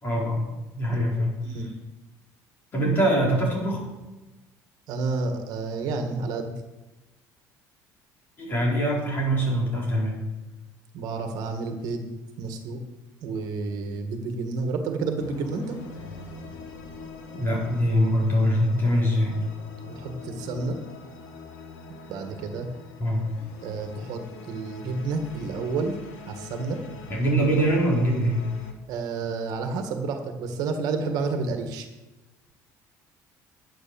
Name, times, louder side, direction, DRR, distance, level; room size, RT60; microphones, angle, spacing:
voice 1, 0.0-1.3 2.7-3.8 8.4-10.2 17.3-19.3 23.0-23.2 27.1-28.4, equal, 30° left, -3 dB, 4.7 m, -23 dB
voice 2, 0.9-1.7 4.9-6.5 10.9-12.1 12.4-12.8 13.2-15.8 19.8-20.8 22.1-22.7 23.6-24.2 24.5-25.9 26.3-26.8 28.9-31.9, right 4 dB, 65° right, 6 dB, 1.8 m, -30 dB
sound 1, 15.2-28.7, left 3 dB, 85° left, 2.0 m, -43 dB
10.0 x 10.0 x 7.1 m, 1.1 s
cardioid pair, 150°, 7 cm